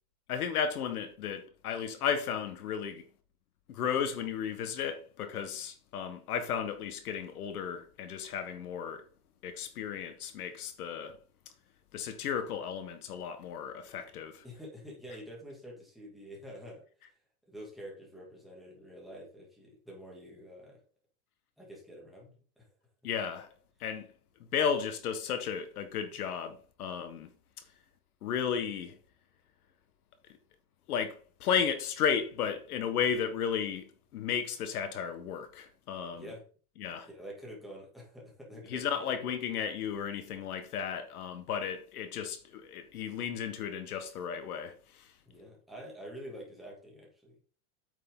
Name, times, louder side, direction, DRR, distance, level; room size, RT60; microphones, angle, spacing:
voice 1, 0.3-3.0 3.7-9.0 9.4-11.2 11.9-14.4 23.0-23.5 23.8-24.1 24.5-27.3 28.2-29.0 30.9-36.2 36.8-37.1 38.7-44.7, left 7 dB, 75° left, 1.6 m, -34 dB
voice 2, 14.4-17.1 17.5-20.8 21.6-22.7 36.1-36.4 37.1-39.1 45.3-47.4, equal, ahead, 2.4 m, -47 dB
8.8 x 6.6 x 3.8 m
supercardioid pair, 155°, 45 cm